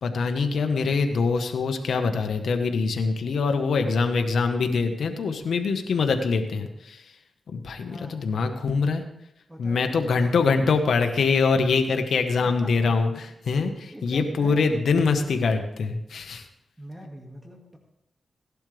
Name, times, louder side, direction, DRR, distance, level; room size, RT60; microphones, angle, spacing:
voice 1, 0.0-7.1 7.5-9.0 9.6-16.5, left 4 dB, 80° left, 5 dB, 1.3 m, -24 dB
voice 2, 7.9-8.2 9.5-10.8 12.4-12.9 13.9-14.8 16.8-17.8, equal, 15° right, 0 dB, 2.2 m, -42 dB
17.0 x 11.5 x 3.4 m, 0.79 s
cardioid pair, 65°, 0 cm